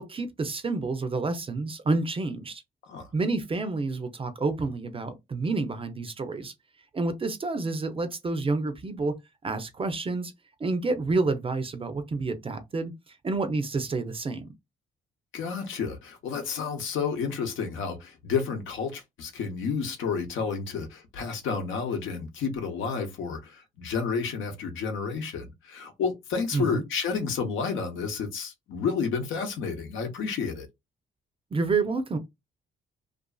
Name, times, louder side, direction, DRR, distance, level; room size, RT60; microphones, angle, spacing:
voice 1, 0.0-2.6 3.1-6.5 6.9-9.1 9.4-10.3 10.6-12.9 13.2-14.5 26.5-26.8 31.5-32.2, right 3 dB, 30° right, 0.5 m, -29 dB
voice 2, 15.3-30.7, left 5 dB, 80° left, 0.8 m, -31 dB
2.5 x 2.4 x 2.3 m
cardioid pair, 90°, 20 cm